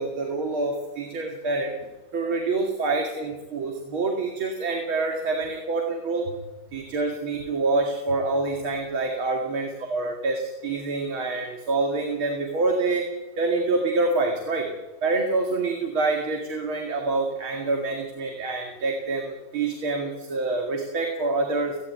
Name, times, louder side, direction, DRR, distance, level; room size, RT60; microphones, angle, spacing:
voice 1, 0.0-1.7 2.1-6.4 6.7-13.0 13.4-14.7 15.0-21.8, right 3 dB, 85° right, 2 dB, 3.1 m, -26 dB
18.0 x 16.5 x 9.2 m, 1.1 s
omnidirectional pair, 2.2 m